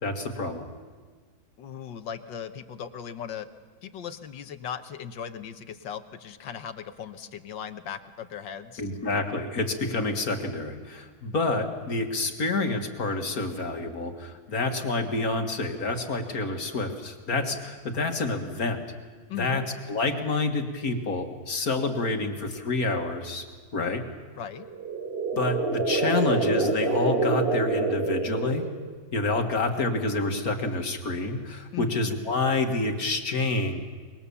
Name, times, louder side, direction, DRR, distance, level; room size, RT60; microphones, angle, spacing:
voice 1, 0.0-0.6 8.8-18.8 19.3-19.6 19.9-23.4 23.7-24.0 25.3-28.7 29.1-33.8, left 3 dB, 45° left, 4 dB, 2.1 m, -28 dB
voice 2, 1.6-3.5 3.8-8.8 19.3-19.6 24.3-24.7 31.7-32.1, left 8 dB, 65° left, 9 dB, 1.6 m, -38 dB
sound 1, 24.6-29.0, right 3 dB, 30° right, 1.4 m, -27 dB
25.5 x 22.0 x 7.0 m, 1.5 s
omnidirectional pair, 2.2 m